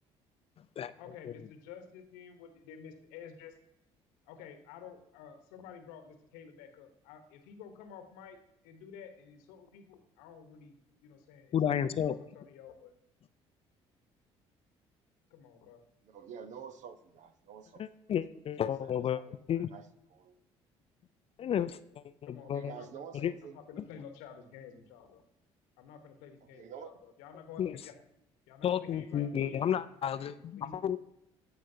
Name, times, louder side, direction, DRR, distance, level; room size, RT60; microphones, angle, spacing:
voice 1, 1.0-3.5 4.2-8.4 8.6-12.9 15.3-15.8 22.2-25.2 25.8-27.9 28.5-29.7 30.2-31.0, left 7 dB, 75° left, 7 dB, 1.0 m, -51 dB
voice 2, 11.5-12.2 17.8-19.2 19.5-19.7 21.4-21.8 22.2-22.7 23.1-23.3 27.6-27.8 28.6-31.0, left 9 dB, 40° left, 14 dB, 0.4 m, -31 dB
voice 3, 16.0-17.8 18.8-19.8 20.1-20.4 22.4-23.6 26.5-27.0, right 7 dB, 55° right, 11 dB, 0.8 m, -48 dB
15.0 x 5.0 x 2.7 m, 0.82 s
hypercardioid pair, 60°, 14 cm